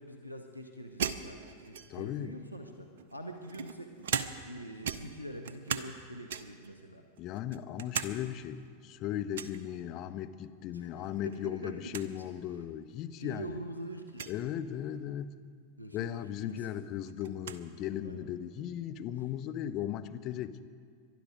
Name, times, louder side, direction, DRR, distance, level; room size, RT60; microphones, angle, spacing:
voice 1, 0.0-7.0 10.7-12.2 13.2-14.3 15.8-16.7 18.0-18.3 19.2-19.3, right 1 dB, 90° left, 3 dB, 1.0 m, -45 dB
sound 1, 1.0-2.2 3.0-4.6 4.8-6.0 6.3-6.7 7.2-8.1 8.5-8.6 9.3-9.6 11.0-11.4 11.6-11.7 11.9-12.1 12.9-13.0 14.1-14.4 16.0-16.1 16.5-17.6, right 7 dB, 60° right, 0.7 m, -37 dB
voice 2, 1.9-2.3 7.2-13.6 14.3-15.3 15.9-20.6, left 10 dB, 40° left, 9 dB, 0.7 m, -37 dB
22.0 x 12.0 x 5.1 m, 2.1 s
figure-of-eight pair, 90°, 0 cm